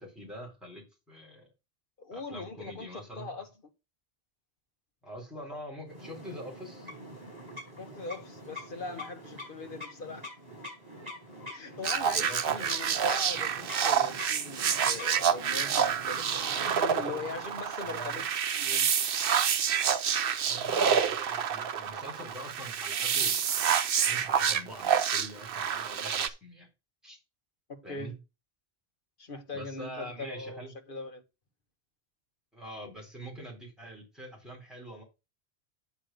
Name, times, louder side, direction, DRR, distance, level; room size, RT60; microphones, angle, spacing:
voice 1, 0.0-1.5 2.1-3.3 5.0-6.9 12.0-12.7 17.8-18.2 20.4-23.6 24.1-26.7 27.0-27.2 27.8-28.1 29.5-30.7 32.5-35.0, equal, ahead, 3.6 m, -44 dB
voice 2, 2.0-3.5 7.8-10.3 11.5-18.9 27.7-28.1 29.2-31.2, left 3 dB, 60° left, 1.4 m, -41 dB
sound 1, 5.9-17.7, left 1 dB, 40° right, 5.1 m, -45 dB
sound 2, 11.8-26.3, right 7 dB, 65° right, 0.9 m, -28 dB
9.1 x 3.6 x 6.6 m
omnidirectional pair, 1.0 m